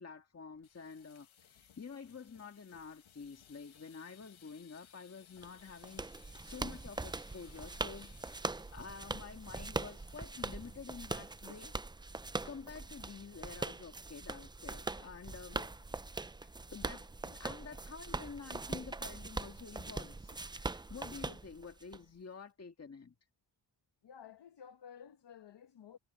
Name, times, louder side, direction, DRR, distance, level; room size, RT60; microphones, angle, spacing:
voice 1, 0.0-8.2 8.4-15.6 16.4-23.2, left 5 dB, 30° left, 1.8 m, -49 dB
sound 1, 0.6-12.2 12.5-12.8 13.1-13.2 13.5-14.0, left 9 dB, 85° left, 1.6 m, -63 dB
sound 2, 5.4-22.0, right 3 dB, 10° right, 0.3 m, -42 dB
voice 2, 15.5-15.8 24.0-26.0, left 8 dB, 60° left, 1.0 m, -53 dB
wide cardioid pair, 125°, 46 cm